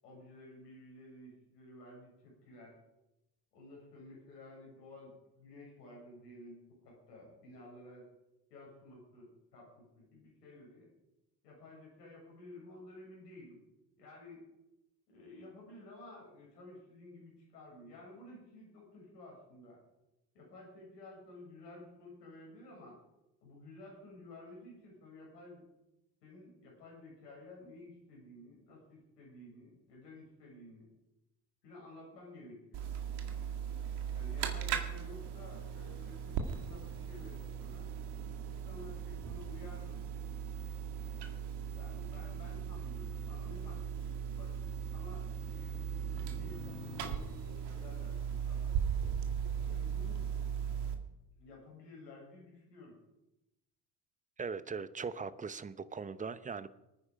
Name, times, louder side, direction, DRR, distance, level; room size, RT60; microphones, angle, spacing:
voice 1, 0.0-2.7 3.5-8.1 8.5-10.9 11.4-13.6 14.0-14.4 15.1-19.8 20.3-23.0 23.4-25.6 26.2-30.9 31.6-32.8 34.1-37.9 38.4-40.0 41.7-44.7 44.9-48.8 49.6-50.3 51.4-53.0, left 2 dB, 80° left, -3 dB, 7.7 m, -53 dB
sound 1, 32.7-50.9, right 8 dB, 55° right, 2.2 m, -38 dB
voice 2, 54.4-56.7, right 5 dB, 15° right, 15 dB, 0.9 m, -40 dB
24.0 x 9.8 x 5.2 m, 0.93 s
figure-of-eight pair, 60°, 49 cm